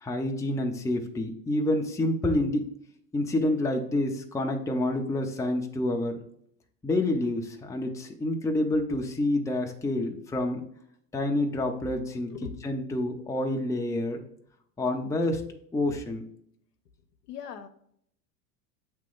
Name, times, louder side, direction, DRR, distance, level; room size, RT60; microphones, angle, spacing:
voice 1, 0.0-2.6 3.1-6.2 6.8-10.6 11.1-12.3 12.6-14.3 14.8-15.4 15.7-16.2, left 1 dB, 5° left, 2 dB, 0.6 m, -28 dB
voice 2, 12.3-12.8 17.2-17.7, left 7 dB, 85° left, 7 dB, 0.9 m, -40 dB
8.2 x 3.3 x 3.8 m, 0.69 s
hypercardioid pair, 95°, 47 cm